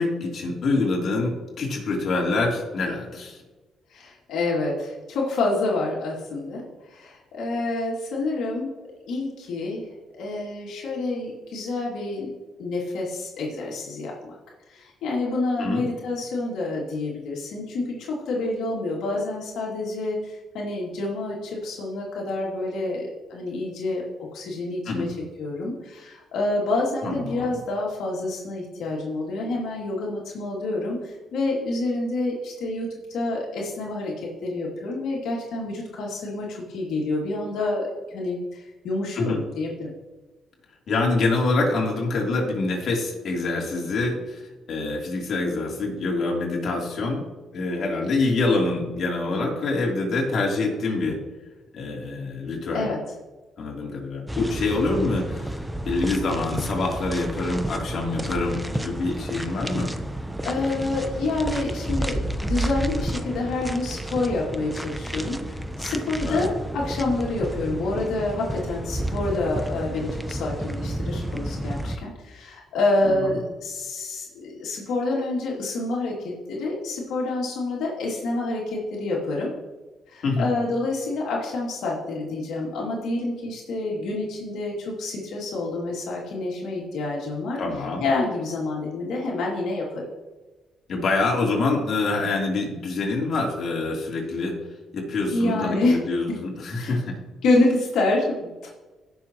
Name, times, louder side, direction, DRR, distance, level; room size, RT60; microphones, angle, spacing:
voice 1, 0.0-3.4 15.6-15.8 24.9-25.1 27.0-27.5 39.2-39.4 40.9-44.4 44.7-47.2 47.5-51.2 51.7-52.9 53.6-55.5 55.8-59.9 66.3-66.4 73.0-73.1 80.2-80.5 87.6-88.0 90.9-94.5 94.9-97.2, left 3 dB, 60° left, -2 dB, 3.5 m, -25 dB
voice 2, 3.9-6.6 6.9-8.7 9.1-9.9 10.2-12.3 12.6-14.4 14.7-25.1 25.4-39.9 52.7-53.0 60.4-79.5 80.1-87.6 88.0-90.0 95.3-96.4 96.8-97.0 97.4-98.7, left 2 dB, 80° left, -3 dB, 2.6 m, -27 dB
sound 1, 54.3-72.0, right 1 dB, 5° right, 0.8 m, -31 dB
17.5 x 6.8 x 3.1 m, 1.2 s
cardioid pair, 90°, 0 cm